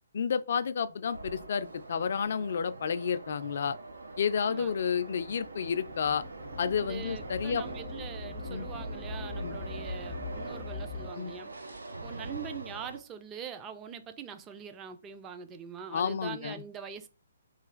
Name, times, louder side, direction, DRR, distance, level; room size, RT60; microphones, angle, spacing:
voice 1, 0.1-3.8 4.2-6.2 6.6-7.6 8.5-8.7 9.4-9.6 11.2-11.3 15.9-16.6, left 7 dB, 60° left, 0.3 m, -31 dB
sound 1, 0.9-12.1, right 1 dB, 70° right, 1.2 m, -56 dB
sound 2, 1.1-13.0, right 3 dB, 90° right, 0.6 m, -44 dB
voice 2, 4.4-4.9 6.8-11.5 12.0-17.1, right 7 dB, 20° right, 0.4 m, -43 dB
sound 3, 5.2-11.1, left 2 dB, 45° right, 1.3 m, -41 dB
3.2 x 2.4 x 3.8 m
hypercardioid pair, 145°, 0 cm